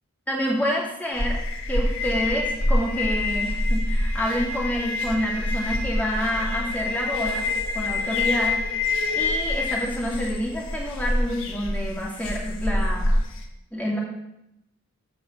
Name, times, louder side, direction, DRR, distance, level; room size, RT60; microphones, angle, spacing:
voice 1, 0.3-1.4 1.7-7.5 7.7-8.6 9.1-13.2 13.7-14.0, equal, 5° left, -3 dB, 2.5 m, -28 dB
sound 1, 1.1-13.4, left 2 dB, 60° left, 1.4 m, -26 dB
13.5 x 4.6 x 7.1 m, 0.84 s
head